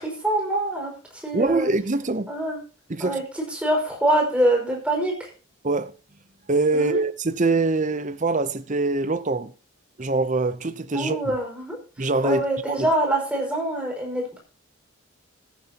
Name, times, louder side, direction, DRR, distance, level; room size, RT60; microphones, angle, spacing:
voice 1, 0.0-1.7 2.3-2.6 3.0-5.3 6.7-7.0 10.9-11.8 12.2-14.4, right 1 dB, 5° right, 5.5 m, -25 dB
voice 2, 1.3-2.3 2.9-3.2 5.6-5.9 6.5-9.5 10.0-11.3 12.0-12.9, right 3 dB, 35° right, 0.7 m, -24 dB
15.0 x 14.0 x 2.9 m
head